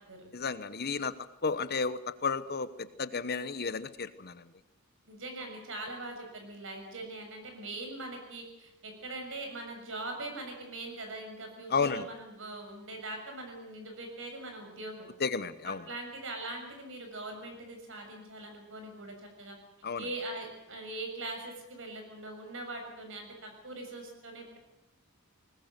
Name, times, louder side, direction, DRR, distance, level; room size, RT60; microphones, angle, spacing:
voice 1, 0.3-1.1 1.4-4.4 11.7-12.1 15.2-15.8 19.8-20.0, left 4 dB, 50° left, 13 dB, 1.0 m, -32 dB
voice 2, 5.1-15.1 15.9-19.6 20.0-24.6, right 2 dB, 65° right, 4 dB, 6.8 m, -42 dB
20.5 x 20.5 x 8.1 m, 0.89 s
head